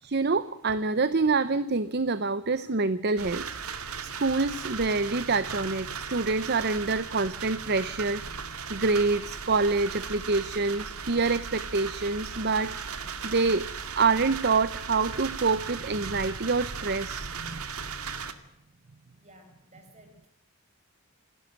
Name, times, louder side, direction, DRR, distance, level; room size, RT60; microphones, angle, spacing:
voice 1, 0.0-8.2 8.7-12.7 13.2-13.7 14.0-17.6, right 3 dB, 50° right, 14 dB, 0.8 m, -26 dB
sound 1, 3.2-18.3, right 6 dB, 90° right, 2.3 m, -37 dB
voice 2, 19.2-20.3, right 1 dB, 30° right, 4 dB, 6.5 m, -55 dB
28.5 x 13.0 x 9.4 m, 0.78 s
head